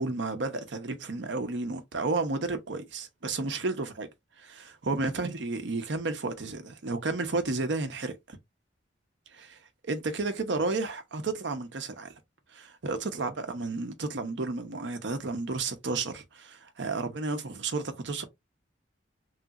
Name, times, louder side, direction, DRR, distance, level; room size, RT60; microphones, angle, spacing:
voice 1, 0.0-4.1 4.4-8.4 9.3-9.6 9.9-12.1 12.5-18.2, right 3 dB, 75° right, 0.8 m, -32 dB
3.2 x 2.9 x 2.4 m
head